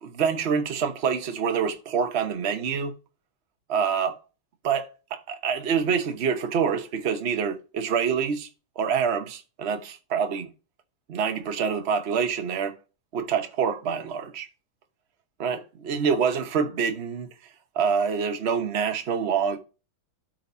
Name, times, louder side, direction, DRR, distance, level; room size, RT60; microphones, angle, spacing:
voice 1, 0.0-2.9 3.7-4.2 4.6-8.5 8.8-10.5 11.1-12.7 13.1-14.5 15.4-17.3 17.8-19.6, right 6 dB, 45° right, 0.9 m, -26 dB
12.5 x 4.7 x 2.7 m
omnidirectional pair, 2.3 m